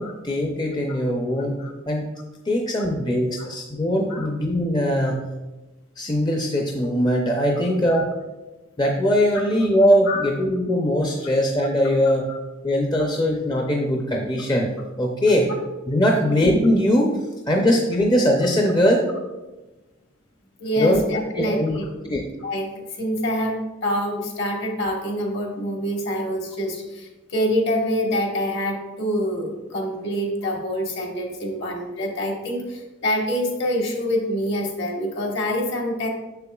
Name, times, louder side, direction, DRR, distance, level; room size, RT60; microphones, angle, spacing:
voice 1, 0.0-1.6 1.9-2.0 2.5-5.3 6.0-8.1 8.8-12.3 12.6-14.7 15.0-15.5 15.9-17.2 17.5-19.1 20.8-21.0 21.3-21.8 22.0-22.2, equal, 20° left, 0 dB, 0.5 m, -21 dB
voice 2, 16.1-16.5 20.6-21.9 22.4-36.1, equal, 55° left, 1 dB, 1.3 m, -26 dB
6.7 x 6.6 x 2.3 m, 1.1 s
head